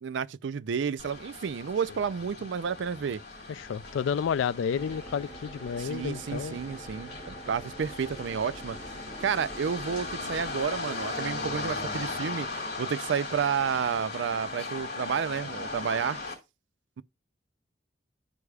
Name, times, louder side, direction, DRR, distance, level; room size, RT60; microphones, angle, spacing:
voice 1, 0.0-3.2 5.8-8.8 9.2-12.5 12.8-16.2, right 7 dB, 75° right, 0.4 m, -31 dB
sound 1, 1.0-16.4, left 3 dB, 60° left, 2.5 m, -38 dB
voice 2, 3.5-6.6, left 7 dB, 90° left, 0.3 m, -30 dB
sound 2, 4.7-10.7, right 2 dB, 5° left, 3.4 m, -46 dB
12.0 x 4.8 x 2.3 m
head